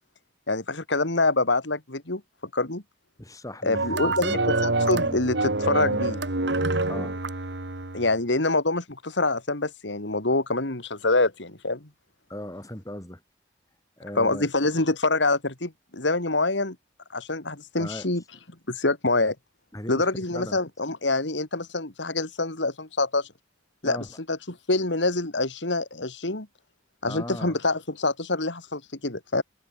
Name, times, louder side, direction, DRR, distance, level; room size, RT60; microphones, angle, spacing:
voice 1, 0.5-2.2 2.5-2.8 3.6-6.2 7.9-11.9 14.2-16.8 17.1-18.2 18.7-19.3 19.9-23.3 23.8-26.5 27.0-29.4, left 2 dB, 75° left, 2.8 m, -26 dB
voice 2, 3.2-4.4 6.9-7.2 12.3-13.2 14.0-14.5 17.8-18.1 19.7-20.6 23.8-24.1 27.0-27.6, left 1 dB, 20° left, 5.1 m, -37 dB
sound 1, 3.7-8.1, right 2 dB, 70° right, 2.4 m, -26 dB
head